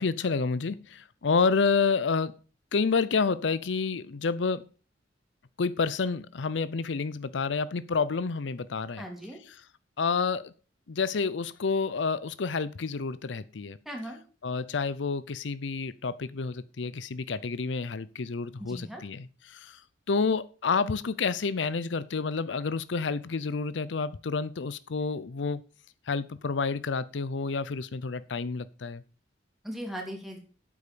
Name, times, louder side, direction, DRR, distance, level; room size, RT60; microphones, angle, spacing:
voice 1, 0.0-2.4 2.7-4.6 5.6-9.0 9.5-9.6 10.0-10.5 10.9-13.8 14.4-19.8 20.1-25.6 26.1-29.0, left 4 dB, 75° left, 0.6 m, -29 dB
voice 2, 9.0-9.4 13.8-14.2 18.6-19.0 29.6-30.4, equal, ahead, 3.1 m, -38 dB
8.7 x 8.5 x 6.9 m
head